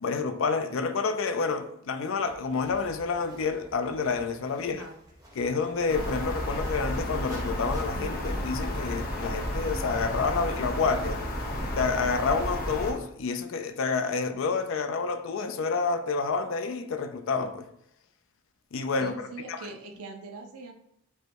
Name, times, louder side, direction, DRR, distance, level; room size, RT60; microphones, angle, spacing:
voice 1, 0.0-4.9 5.4-11.2 11.7-17.7 18.7-19.6, left 4 dB, 60° left, 0.4 m, -29 dB
sound 1, 2.2-8.5, equal, 15° right, 1.1 m, -50 dB
voice 2, 4.6-5.0 19.0-20.7, right 3 dB, 80° right, 0.5 m, -43 dB
sound 2, 5.9-12.9, left 1 dB, 40° left, 0.8 m, -32 dB
5.1 x 2.2 x 4.5 m
head